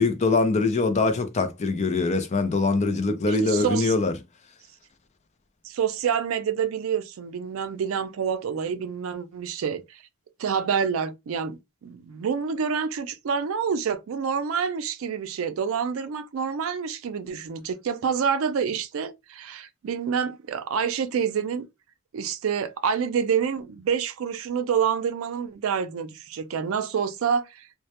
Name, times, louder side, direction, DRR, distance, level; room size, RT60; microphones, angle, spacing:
voice 1, 0.0-4.1, left 3 dB, 35° left, 0.4 m, -23 dB
voice 2, 3.3-3.9 5.6-10.0 10.4-21.7 22.1-27.8, right 7 dB, 75° right, 0.4 m, -27 dB
2.1 x 2.1 x 2.8 m
head